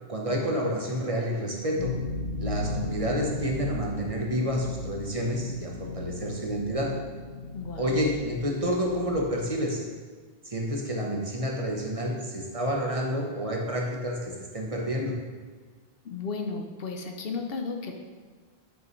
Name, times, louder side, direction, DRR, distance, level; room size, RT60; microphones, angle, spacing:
voice 1, 0.1-1.9 2.4-6.9 7.8-9.8 10.4-15.1, equal, 35° right, -1 dB, 1.0 m, -29 dB
sound 1, 1.8-9.4, left 3 dB, 90° left, 1.1 m, -36 dB
voice 2, 7.5-8.0 16.0-17.9, left 4 dB, 70° left, 4 dB, 0.9 m, -34 dB
8.9 x 5.4 x 3.1 m, 1.5 s
omnidirectional pair, 1.0 m